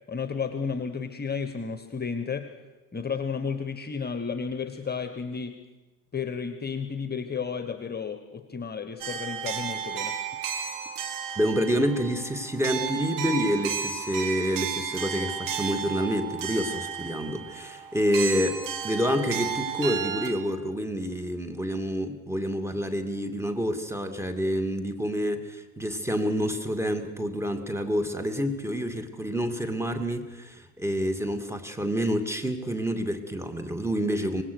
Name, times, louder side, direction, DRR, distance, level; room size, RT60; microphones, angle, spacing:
voice 1, 0.1-2.5 2.9-5.6 6.1-10.2, left 5 dB, 20° left, 9 dB, 1.4 m, -32 dB
sound 1, 9.0-20.3, right 7 dB, 45° right, 2.8 m, -33 dB
voice 2, 11.4-34.4, equal, 5° right, 7 dB, 2.6 m, -28 dB
25.0 x 20.0 x 6.5 m, 1.1 s
figure-of-eight pair, 60°, 44 cm